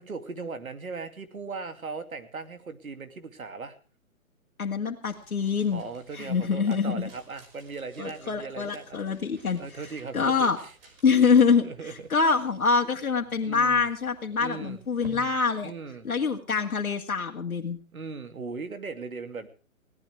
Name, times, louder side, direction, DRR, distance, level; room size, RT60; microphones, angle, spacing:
voice 1, 0.1-3.8 5.7-9.0 9.6-10.7 11.6-12.1 13.4-13.8 14.4-14.8 15.6-16.1 17.9-19.5, right 4 dB, 80° right, 8 dB, 2.7 m, -38 dB
voice 2, 4.6-5.8 6.1-7.1 8.0-9.6 10.1-10.6 11.0-15.7 16.0-17.8, left 5 dB, 80° left, 2 dB, 2.2 m, -25 dB
sound 1, 5.0-16.4, right 1 dB, 40° right, 5.7 m, -54 dB
21.5 x 17.5 x 3.4 m, 0.37 s
hypercardioid pair, 150°, 42 cm